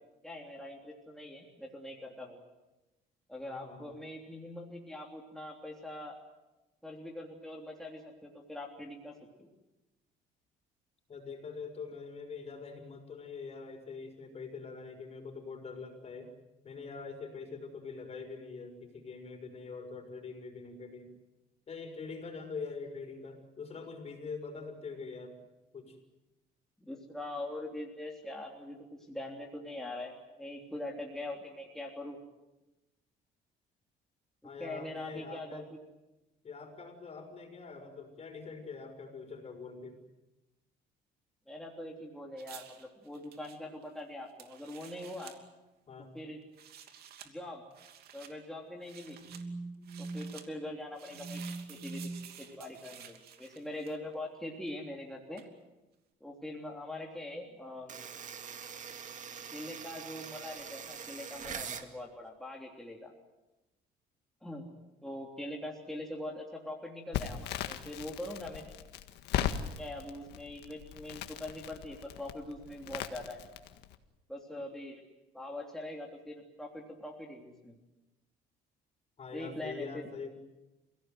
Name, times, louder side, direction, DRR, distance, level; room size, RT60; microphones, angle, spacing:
voice 1, 0.2-2.4 3.3-6.2 6.8-9.5 26.9-28.8 29.1-30.1 30.4-32.2 34.4-35.6 41.5-45.3 46.1-46.4 47.2-47.6 48.1-49.2 50.1-51.4 51.7-52.0 52.4-55.4 56.2-57.9 59.5-63.1 64.4-64.7 65.0-68.6 69.8-73.4 74.3-75.0 75.3-77.8 79.3-79.9, left 1 dB, 5° left, -1 dB, 3.4 m, -42 dB
voice 2, 3.4-3.9 11.1-16.3 16.6-21.1 21.7-25.4 25.7-26.0 34.4-35.6 36.4-40.0 45.9-46.1 49.1-50.2 51.1-52.1 79.2-80.3, left 3 dB, 40° left, 5 dB, 6.1 m, -43 dB
sound 1, 42.4-45.4 46.4-47.3 47.7-48.3 48.8-49.4 49.8-50.5 50.9-54.1 55.4-55.5, right 9 dB, 70° right, 2.9 m, -52 dB
sound 2, 57.9-61.9, right 7 dB, 50° right, 2.3 m, -43 dB
Crackle, 67.1-73.9, left 10 dB, 85° left, 1.8 m, -38 dB
29.5 x 17.0 x 9.4 m, 1.0 s
cardioid pair, 110°, 17 cm